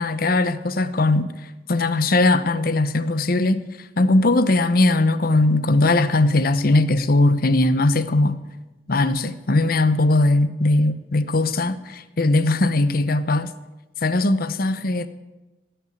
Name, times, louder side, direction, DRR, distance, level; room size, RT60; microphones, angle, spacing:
voice 1, 0.0-1.3 1.7-8.4 8.9-13.5 14.0-15.1, left 2 dB, 50° left, 0.8 m, -19 dB
17.0 x 6.7 x 9.2 m
head